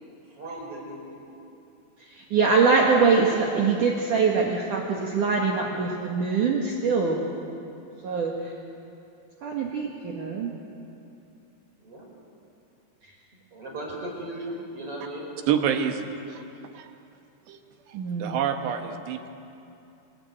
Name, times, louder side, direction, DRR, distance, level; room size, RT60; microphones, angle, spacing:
voice 1, 0.2-1.3 11.8-12.0 13.5-15.4, right 1 dB, 30° right, -2 dB, 6.2 m, -37 dB
voice 2, 2.1-7.2 8.0-8.5 9.4-10.5 17.9-18.4, right 4 dB, 55° right, -1 dB, 2.8 m, -23 dB
voice 3, 15.5-16.4 16.7-16.9 17.5-17.6 17.9-19.3, right 8 dB, 75° right, 5 dB, 3.4 m, -28 dB
26.5 x 21.0 x 9.2 m, 2.8 s
omnidirectional pair, 5.2 m